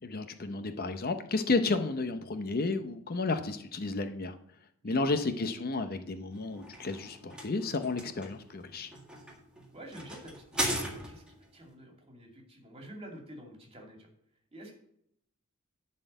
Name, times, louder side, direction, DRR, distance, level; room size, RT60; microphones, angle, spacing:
voice 1, 0.0-4.4 4.8-8.9, left 3 dB, 45° left, 9 dB, 0.7 m, -32 dB
voice 2, 4.8-5.1 9.7-14.1 14.5-14.7, right 1 dB, 25° right, 1 dB, 2.5 m, -48 dB
sound 1, 6.3-11.4, right 1 dB, 5° right, 1.8 m, -38 dB
11.0 x 4.3 x 8.0 m, 0.71 s
head